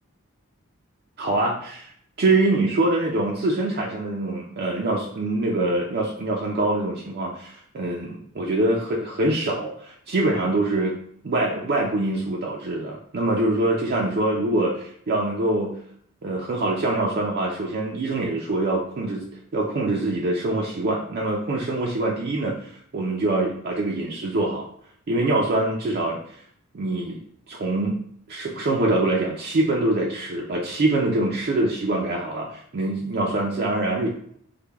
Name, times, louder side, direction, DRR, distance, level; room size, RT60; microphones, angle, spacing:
voice 1, 1.2-1.9 2.2-11.0 11.2-15.7 16.2-19.2 19.5-24.7 25.1-26.2 26.7-27.2 27.5-28.0 28.3-34.1, right 2 dB, 50° right, -2 dB, 0.4 m, -24 dB
3.2 x 2.1 x 3.4 m, 0.65 s
head